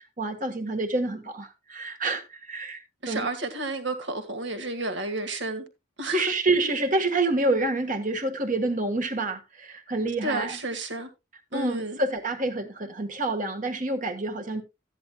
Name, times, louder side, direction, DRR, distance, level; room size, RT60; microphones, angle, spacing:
voice 1, 0.0-3.3 6.1-10.6 11.5-14.6, right 2 dB, 40° right, 1.6 m, -28 dB
voice 2, 3.0-5.7 6.0-6.3 10.2-11.1 11.5-12.0, right 2 dB, 65° right, 1.8 m, -31 dB
13.5 x 10.0 x 2.3 m
head